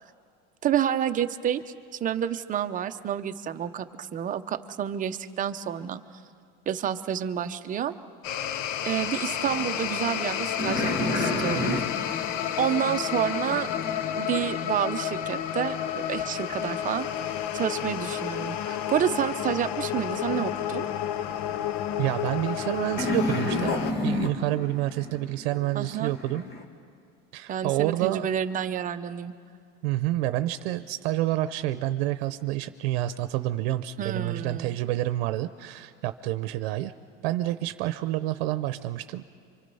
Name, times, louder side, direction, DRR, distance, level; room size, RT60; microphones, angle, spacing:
voice 1, 0.6-1.6 2.0-6.0 6.7-7.9 8.8-11.8 12.6-13.7 14.2-20.9 25.7-26.1 27.5-29.3 34.0-34.7, right 9 dB, 25° right, 8 dB, 0.7 m, -29 dB
sound 1, 8.2-23.9, left 10 dB, 65° left, 0.9 m, -31 dB
sound 2, 9.4-14.6 23.0-26.6, left 2 dB, 35° left, 2.1 m, -32 dB
voice 2, 22.0-23.7 24.0-26.4 27.3-28.3 29.8-36.9 37.2-39.3, right 15 dB, 85° right, 11 dB, 0.7 m, -28 dB
28.0 x 25.0 x 5.5 m, 2.2 s
cardioid pair, 145°, 30 cm